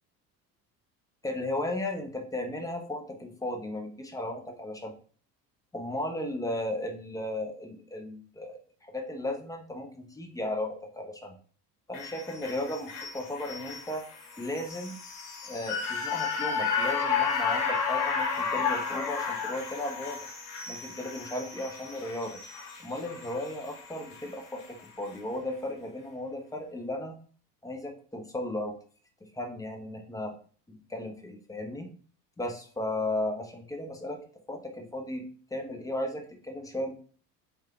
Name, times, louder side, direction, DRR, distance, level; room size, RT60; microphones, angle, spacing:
voice 1, 1.2-4.9 5.7-11.3 11.9-14.0 14.4-15.0 15.4-20.2 20.7-22.4 22.8-27.1 27.6-28.7 29.2-30.4 30.9-31.9 32.4-34.2 34.5-35.2 35.5-36.9, left 1 dB, 10° left, 3 dB, 0.5 m, -35 dB
sound 1, 11.9-24.3 24.6-24.7, left 5 dB, 75° left, 0.9 m, -32 dB
3.0 x 3.0 x 2.4 m, 0.43 s
hypercardioid pair, 70°, 49 cm